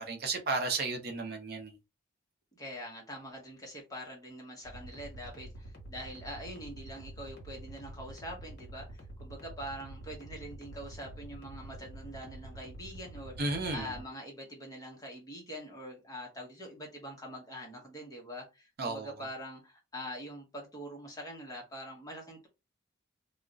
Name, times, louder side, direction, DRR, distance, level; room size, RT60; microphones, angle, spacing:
voice 1, 0.1-1.7 13.4-13.9 18.8-19.1, right 3 dB, 50° right, 0.6 m, -33 dB
voice 2, 2.6-13.3 13.7-22.5, equal, 15° left, 0.8 m, -44 dB
sound 1, 4.6-14.0, right 1 dB, 55° left, 1.1 m, -47 dB
2.3 x 2.1 x 3.7 m
head